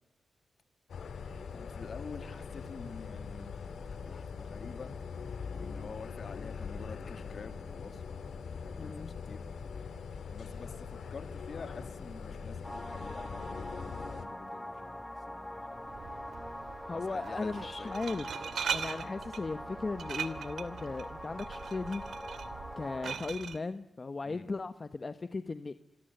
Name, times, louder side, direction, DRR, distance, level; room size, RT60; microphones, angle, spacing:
sound 1, 0.9-14.3, left 5 dB, 70° left, 3.6 m, -42 dB
voice 1, 1.5-5.0 5.5-9.4 10.3-16.1 16.9-17.9 24.2-24.5, left 4 dB, 50° left, 9 dB, 3.3 m, -48 dB
voice 2, 8.8-9.1 16.9-22.0 22.7-25.7, left 3 dB, 35° left, 11 dB, 1.3 m, -37 dB
sound 2, 12.6-23.1, left 1 dB, 5° left, 1.5 m, -43 dB
Glass, 15.8-23.6, right 7 dB, 75° right, 2.6 m, -41 dB
27.5 x 23.5 x 8.0 m, 0.73 s
cardioid pair, 100°, 0 cm